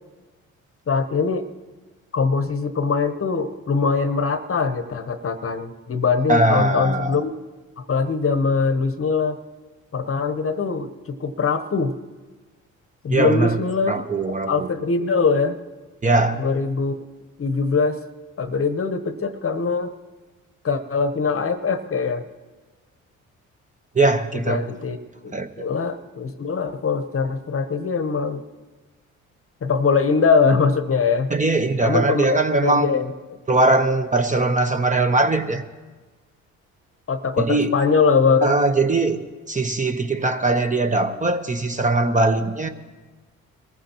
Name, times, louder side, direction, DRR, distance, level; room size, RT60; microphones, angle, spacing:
voice 1, 0.9-1.5 2.1-7.3 7.8-9.4 9.9-11.9 13.0-14.0 14.5-15.6 16.4-17.0 17.4-18.0 18.4-19.9 20.6-22.2 24.5-25.0 25.2-28.4 29.6-31.3 31.8-33.1 37.1-38.5, left 5 dB, 40° left, 9 dB, 1.0 m, -22 dB
voice 2, 6.3-7.2 13.1-13.6 13.9-14.7 16.0-16.4 23.9-24.6 25.3-25.5 31.3-32.9 33.5-35.6 37.4-37.7 38.4-39.2 39.5-42.7, right 2 dB, 20° right, 7 dB, 1.0 m, -20 dB
22.0 x 14.5 x 3.0 m, 1.3 s
supercardioid pair, 60°, 35 cm